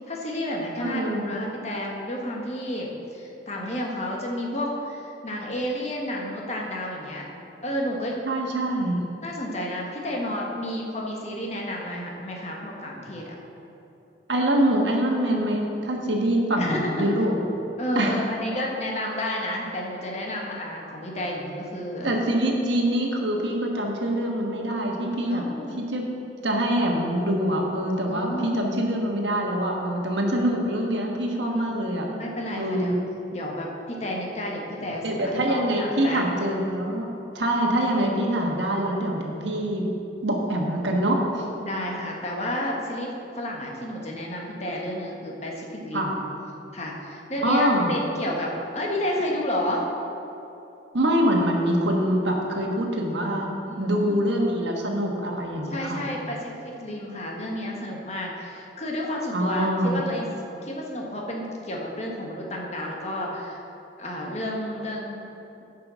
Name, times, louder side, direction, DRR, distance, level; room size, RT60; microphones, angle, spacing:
voice 1, 0.1-7.2 7.6-8.2 9.2-13.3 16.6-17.1 17.8-22.1 25.3-25.8 28.1-28.6 31.5-33.0 33.3-36.2 41.6-46.2 46.7-49.9 53.7-54.2 55.7-60.3 60.6-63.6 64.0-65.2, left 1 dB, 35° left, -1 dB, 1.4 m, -31 dB
voice 2, 0.8-1.3 8.2-9.0 14.3-17.4 17.9-18.1 22.0-25.4 25.8-26.1 26.4-32.0 32.6-33.0 35.0-37.1 37.3-39.8 40.2-41.5 45.9-46.1 47.4-48.0 50.9-56.0 59.3-60.0, right 1 dB, 75° right, 0 dB, 1.4 m, -24 dB
10.5 x 5.9 x 6.2 m, 3.0 s
head